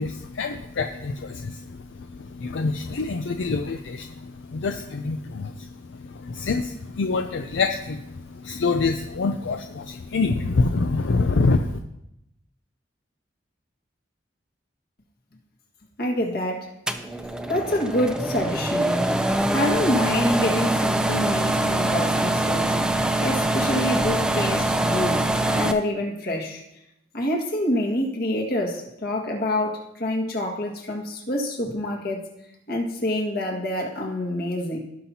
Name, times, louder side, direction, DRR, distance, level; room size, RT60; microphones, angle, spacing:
voice 1, 0.0-11.8, left 3 dB, 80° left, 6 dB, 0.5 m, -26 dB
voice 2, 16.0-16.7 17.5-19.0 19.5-26.6 27.1-32.3 32.7-34.8, left 1 dB, 60° left, 0 dB, 1.8 m, -26 dB
sound 1, 16.9-25.7, right 1 dB, 5° right, 0.4 m, -23 dB
17.0 x 5.8 x 2.8 m, 0.83 s
head